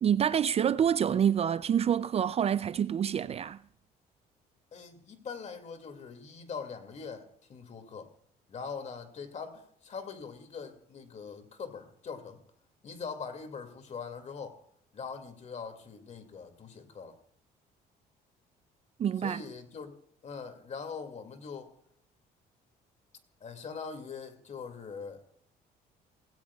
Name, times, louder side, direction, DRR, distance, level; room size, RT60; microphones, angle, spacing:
voice 1, 0.0-3.6 19.0-19.4, right 8 dB, 35° right, 0.4 m, -27 dB
voice 2, 4.7-8.1 8.5-12.4 12.8-14.6 14.9-17.2 19.2-19.9 20.2-21.7 23.4-25.2, left 5 dB, 45° left, 2.4 m, -42 dB
19.0 x 16.5 x 2.4 m
cardioid pair, 110°, 17 cm